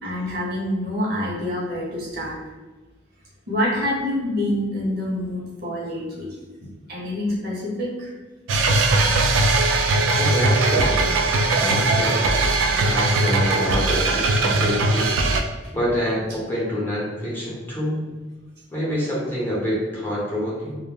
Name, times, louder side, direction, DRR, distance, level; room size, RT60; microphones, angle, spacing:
voice 1, 0.0-2.4 3.5-6.3 6.9-8.1, left 1 dB, 55° right, -4 dB, 0.8 m, -26 dB
sound 1, 8.5-15.4, right 2 dB, 80° right, 0.3 m, -20 dB
voice 2, 10.2-11.1 11.6-12.3 12.8-15.1 15.7-18.1 18.7-20.8, equal, 10° left, -7 dB, 0.7 m, -26 dB
2.2 x 2.0 x 3.2 m, 1.2 s
head